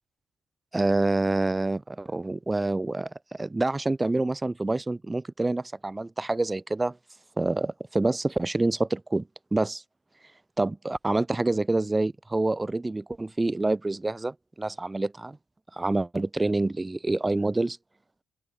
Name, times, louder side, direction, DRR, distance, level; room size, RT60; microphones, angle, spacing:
voice 1, 0.7-7.0 7.4-9.2 9.5-9.8 10.6-15.4 15.7-17.8, right 2 dB, 15° right, 0.6 m, -27 dB
open air
cardioid pair, 90°, 0 cm